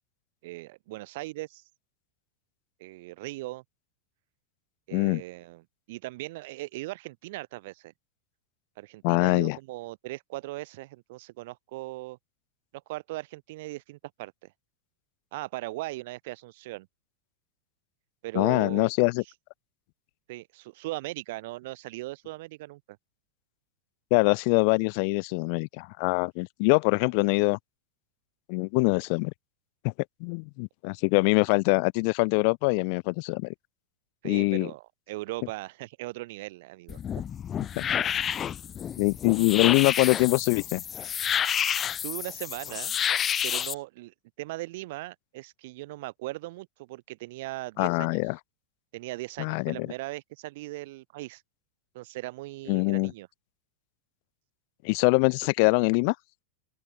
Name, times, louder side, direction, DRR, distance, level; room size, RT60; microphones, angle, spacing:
voice 1, 0.4-1.6 2.8-3.6 4.9-5.6 5.9-7.9 8.8-12.2 12.9-14.3 15.3-16.9 18.2-18.9 20.3-22.8 34.2-37.0 42.0-43.0 43.4-48.2 48.9-51.4 51.9-53.3, right 20 dB, 50° right, 4.4 m, -38 dB
voice 2, 4.9-5.2 9.0-9.6 18.3-19.2 24.1-27.6 28.5-29.3 29.8-29.9 30.2-33.5 34.2-34.7 37.8-37.9 39.0-40.8 47.8-48.4 49.4-49.9 52.7-53.1 54.8-56.1, left 36 dB, 45° left, 0.7 m, -24 dB
sound 1, 36.9-43.7, left 9 dB, 25° left, 1.5 m, -29 dB
open air
figure-of-eight pair, 90°, 0 cm